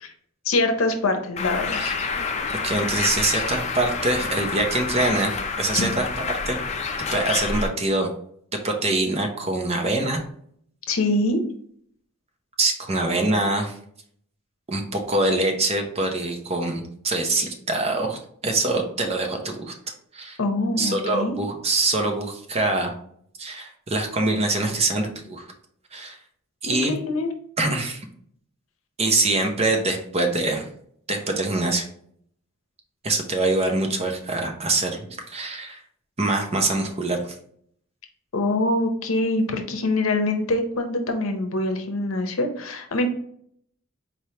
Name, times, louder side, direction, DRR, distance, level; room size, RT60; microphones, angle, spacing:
voice 1, 0.4-1.9 5.7-5.9 10.9-11.4 20.4-21.3 26.7-27.3 38.3-43.1, left 2 dB, 70° left, 5 dB, 0.8 m, -24 dB
Bird, 1.4-7.7, left 4 dB, 35° left, 0.5 m, -28 dB
voice 2, 2.6-6.1 6.5-6.6 7.1-8.1 8.6-10.2 12.6-13.8 14.7-19.7 20.1-20.4 20.8-22.9 23.4-25.4 25.9-26.2 26.6-26.9 27.6-28.1 29.0-30.7 31.1-31.9 33.0-35.8 36.2-37.3, right 2 dB, 30° right, 3 dB, 0.7 m, -24 dB
4.4 x 3.3 x 2.8 m, 0.65 s
head